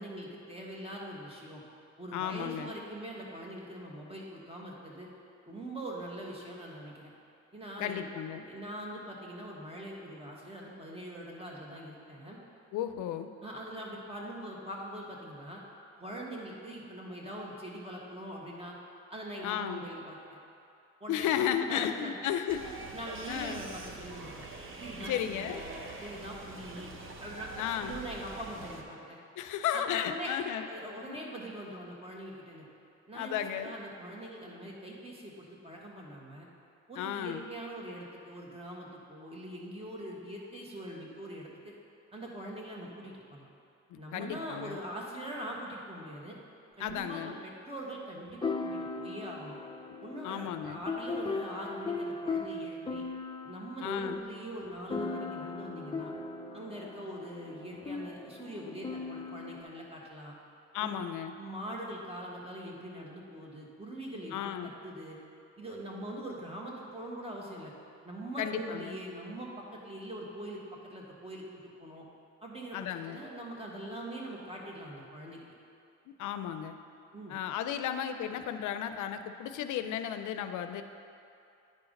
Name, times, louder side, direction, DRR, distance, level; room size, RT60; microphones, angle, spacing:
voice 1, 0.0-1.6 2.0-5.1 5.5-7.1 7.5-8.1 8.3-12.4 13.4-15.6 16.0-18.8 19.1-20.4 21.0-21.3 21.6-22.1 22.9-24.5 24.8-26.9 27.2-27.5 27.8-29.2 29.7-30.3 30.6-32.6 33.1-36.5 36.9-41.7 42.1-43.5 44.0-46.4 46.7-49.5 50.0-53.0 53.4-56.1 56.5-60.3 60.8-61.0 61.4-65.2 65.6-67.7 68.0-71.4 71.8-72.0 72.4-75.4 77.1-77.3, right 1 dB, 20° right, -3 dB, 1.6 m, -43 dB
voice 2, 2.1-2.7 7.8-8.4 12.7-13.3 19.4-19.8 21.1-22.7 23.3-23.6 25.0-25.6 27.6-28.0 29.4-30.7 31.0-31.2 33.1-33.7 37.0-37.5 43.9-44.8 46.8-47.4 50.2-50.8 53.8-54.2 60.7-61.3 64.3-64.7 68.4-68.9 72.7-73.2 76.1-76.8 77.3-80.8, left 9 dB, 80° left, 8 dB, 0.5 m, -34 dB
sound 1, 22.5-28.8, right 3 dB, 45° right, 0.9 m, -45 dB
sound 2, 46.9-47.0 48.4-59.6, left 3 dB, 15° left, 0.5 m, -38 dB
9.4 x 4.8 x 5.3 m, 2.5 s
cardioid pair, 90°, 30 cm